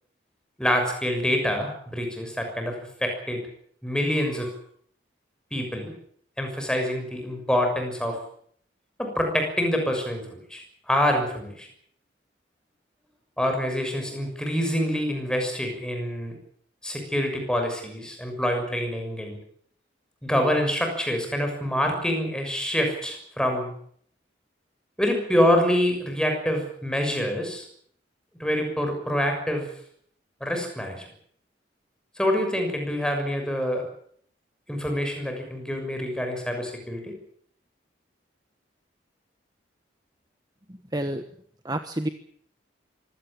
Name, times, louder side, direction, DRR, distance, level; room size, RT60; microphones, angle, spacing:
voice 1, 0.6-3.4 3.8-4.5 5.5-5.9 6.4-8.2 9.0-11.7 13.4-16.3 16.8-19.4 20.2-23.7 25.0-27.7 28.4-29.7 30.4-31.0 32.2-33.9 34.7-37.1, equal, 5° left, 3 dB, 6.4 m, -26 dB
voice 2, 40.7-41.2 41.6-42.1, right 1 dB, 20° right, 8 dB, 1.2 m, -29 dB
25.0 x 17.0 x 8.8 m, 0.63 s
head